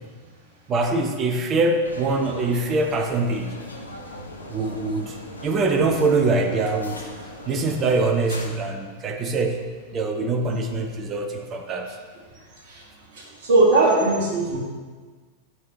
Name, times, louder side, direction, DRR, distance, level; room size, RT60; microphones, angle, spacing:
voice 1, 0.7-3.6 4.5-5.2 5.4-7.0 7.5-9.6 9.9-11.9, right 3 dB, 25° right, 5 dB, 0.7 m, -23 dB
sound 1, 1.8-8.5, left 1 dB, 80° left, 0.8 m, -39 dB
voice 2, 13.1-14.6, right 2 dB, 50° right, -4 dB, 2.1 m, -19 dB
9.3 x 6.0 x 3.0 m, 1.5 s
figure-of-eight pair, 90°, 0 cm